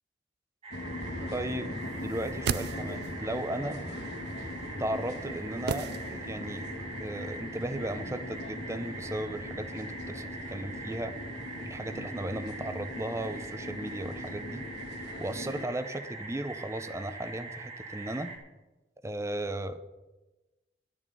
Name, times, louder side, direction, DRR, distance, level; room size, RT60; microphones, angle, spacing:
sound 1, 0.6-18.4, right 3 dB, 35° right, 1.7 m, -43 dB
sound 2, 0.7-15.6, left 1 dB, 65° left, 1.9 m, -40 dB
voice 1, 1.3-3.8 4.8-11.1 11.6-14.7 15.2-18.3 19.0-19.8, right 1 dB, 15° right, 11 dB, 0.6 m, -36 dB
sound 3, 2.1-3.3 5.7-6.6 6.8-6.9, right 6 dB, 60° right, 0.4 m, -35 dB
10.5 x 10.0 x 5.4 m, 1.1 s
head